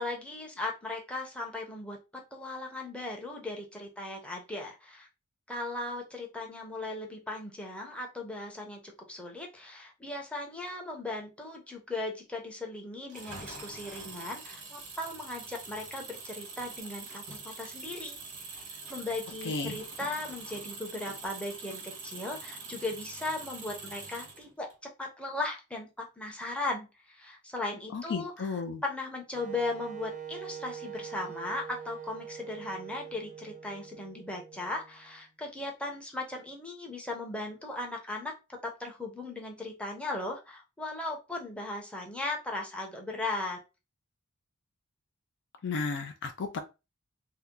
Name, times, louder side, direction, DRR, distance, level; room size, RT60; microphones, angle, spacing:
voice 1, 0.0-5.1 5.5-18.2 18.5-24.7 25.0-28.5 28.8-38.3 38.6-43.6, left 2 dB, 5° left, 0 dB, 0.7 m, -37 dB
Engine, 13.1-24.7, right 4 dB, 85° right, 1.1 m, -44 dB
voice 2, 19.4-19.8 27.9-28.8 45.6-46.6, left 4 dB, 55° left, 6 dB, 0.4 m, -33 dB
Wind instrument woodwind instrument, 29.3-35.2, right 8 dB, 35° right, 0.4 m, -43 dB
2.7 x 2.1 x 3.6 m, 0.27 s
head